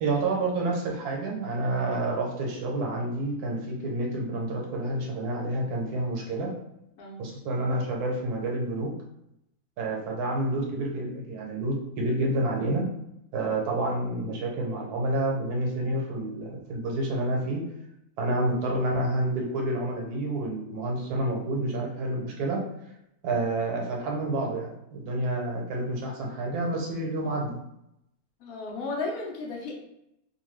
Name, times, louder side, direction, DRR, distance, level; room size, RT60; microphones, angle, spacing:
voice 1, 0.0-6.5 7.2-8.9 9.8-12.9 13.3-17.7 18.2-22.6 23.2-27.6, right 2 dB, 75° right, 0 dB, 1.2 m, -29 dB
voice 2, 7.0-7.3 28.4-29.7, left 3 dB, 75° left, -1 dB, 1.1 m, -34 dB
2.9 x 2.2 x 3.1 m, 0.81 s
omnidirectional pair, 1.6 m